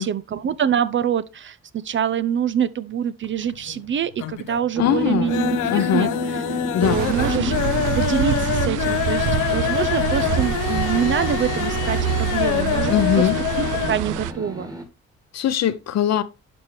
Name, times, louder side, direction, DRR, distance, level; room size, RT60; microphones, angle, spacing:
voice 1, 0.0-6.4 6.8-13.3 13.6-14.7, right 8 dB, 40° right, 0.5 m, -25 dB
sound 1, 3.2-3.9 4.1-4.7 5.0-14.0 14.3-14.4 14.7-14.8, left 12 dB, 90° left, 0.8 m, -25 dB
sound 2, 4.7-8.3 9.3-14.8, right 1 dB, 10° right, 1.6 m, -34 dB
voice 2, 4.8-5.3 5.7-6.1 6.7-7.0 12.9-13.4 15.3-16.2, left 10 dB, 60° left, 0.8 m, -21 dB
sound 3, 6.8-14.3, right 12 dB, 90° right, 0.5 m, -26 dB
11.5 x 4.4 x 3.1 m
cardioid pair, 90°, 30 cm